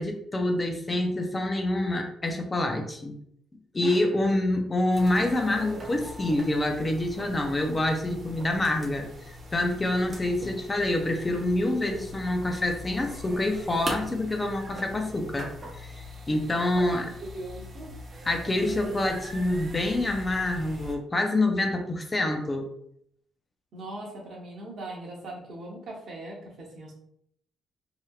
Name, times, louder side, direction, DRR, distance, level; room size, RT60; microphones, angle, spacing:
voice 1, 0.0-3.2 3.7-15.5 15.8-17.1 18.2-22.7, left 1 dB, 25° left, 4 dB, 0.5 m, -27 dB
sound 1, 4.9-20.9, equal, 40° right, 0.9 m, -42 dB
voice 2, 16.7-17.9 23.7-26.9, right 1 dB, 65° right, -2 dB, 1.1 m, -40 dB
3.2 x 2.9 x 2.3 m, 0.69 s
cardioid pair, 90°, 0 cm